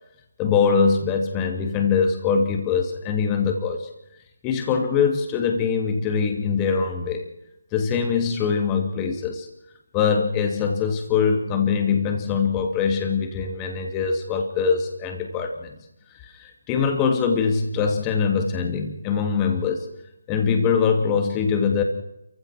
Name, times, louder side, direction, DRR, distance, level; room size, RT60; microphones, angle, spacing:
voice 1, 0.4-3.9 4.4-7.2 7.7-9.5 9.9-15.7 16.3-19.9 20.3-21.8, left 6 dB, 15° left, 4 dB, 2.6 m, -23 dB
28.0 x 16.0 x 6.1 m, 0.87 s
figure-of-eight pair, 160°, 0 cm